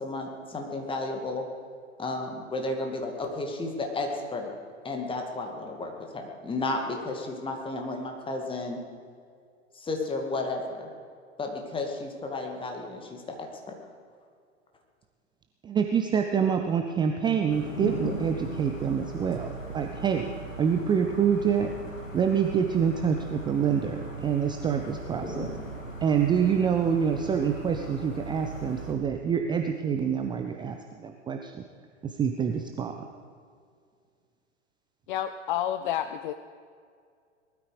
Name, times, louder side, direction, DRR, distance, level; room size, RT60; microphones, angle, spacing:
voice 1, 0.0-1.4 2.0-4.5 4.8-8.8 9.7-10.9 11.4-13.5, left 2 dB, 15° left, 2 dB, 2.3 m, -33 dB
voice 2, 15.6-20.3 20.6-21.7 22.1-25.5 26.0-31.6 32.0-33.1, right 7 dB, 10° right, 5 dB, 0.6 m, -26 dB
sound 1, 17.5-28.9, right 2 dB, 90° left, 2.3 m, -38 dB
voice 3, 35.1-36.3, left 11 dB, 40° left, 11 dB, 0.6 m, -29 dB
19.5 x 13.0 x 5.0 m, 2.2 s
figure-of-eight pair, 100°, 38 cm